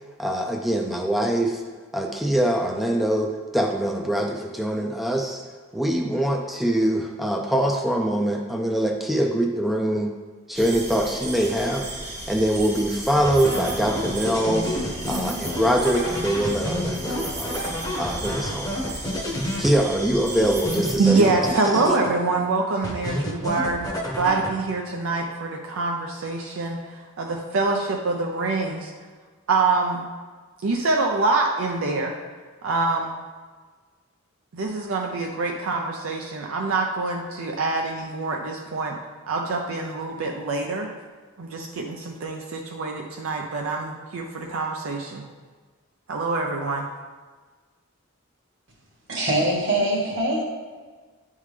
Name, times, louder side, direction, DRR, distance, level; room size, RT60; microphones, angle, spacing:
voice 1, 0.2-1.6 1.9-5.4 5.7-10.1 10.5-11.8 12.3-14.7 15.1-17.6 18.0-18.7 19.6-21.4, right 1 dB, ahead, 1 dB, 0.4 m, -23 dB
sound 1, 10.5-21.0, right 2 dB, 35° right, 1.1 m, -35 dB
sound 2, 13.2-20.1 20.4-22.5 22.8-24.9, left 1 dB, 20° left, 0.8 m, -30 dB
voice 2, 21.0-23.9 24.1-28.9 29.5-30.1 30.6-32.1 32.6-33.2 34.5-39.0 39.3-40.9 41.4-45.2 46.1-46.9, right 3 dB, 80° right, 1 dB, 0.5 m, -25 dB
voice 3, 49.1-50.4, right 1 dB, 65° right, -2 dB, 1.6 m, -23 dB
9.1 x 3.6 x 3.3 m, 1.4 s
head